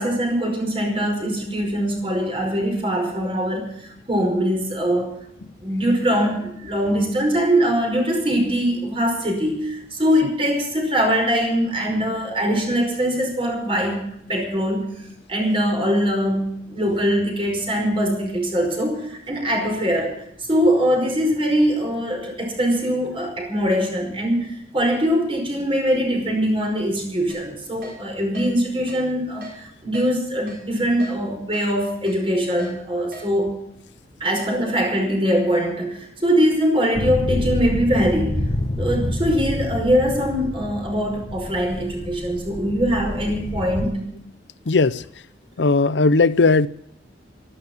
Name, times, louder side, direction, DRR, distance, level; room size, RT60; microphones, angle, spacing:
voice 1, 0.0-3.7 4.1-5.2 5.6-14.0 14.3-14.9 15.3-20.1 20.5-33.5 34.2-38.4 38.8-44.0, equal, 30° right, 5.3 m, -22 dB
Keyboard (musical), 27.3-27.4 27.8-28.0 28.3-28.5 28.9-29.0 29.4-29.5 29.9-30.1 30.5-30.6 31.0-31.1 31.5-31.7 32.1-32.2 32.6-32.7 33.1-33.3, equal, 60° right, 6.1 m, -39 dB
sound 1, 36.9-43.9, left 1 dB, 35° left, 1.3 m, -28 dB
voice 2, 44.7-45.0 45.6-46.7, left 3 dB, 85° left, 0.7 m, -17 dB
13.5 x 13.0 x 7.3 m
head